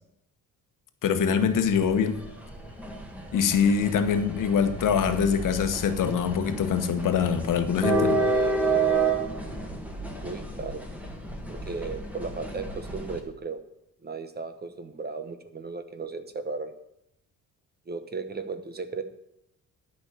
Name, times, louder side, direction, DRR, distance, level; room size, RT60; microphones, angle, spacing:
voice 1, 1.0-2.2 3.3-8.2, left 7 dB, 75° left, 8 dB, 1.3 m, -24 dB
sound 1, 1.2-13.2, right 3 dB, 5° right, 1.8 m, -30 dB
voice 2, 10.2-10.9 11.5-13.6 14.0-16.7 17.9-19.0, right 4 dB, 30° right, 9 dB, 1.1 m, -35 dB
12.0 x 5.6 x 8.4 m, 0.79 s
cardioid pair, 135°, 32 cm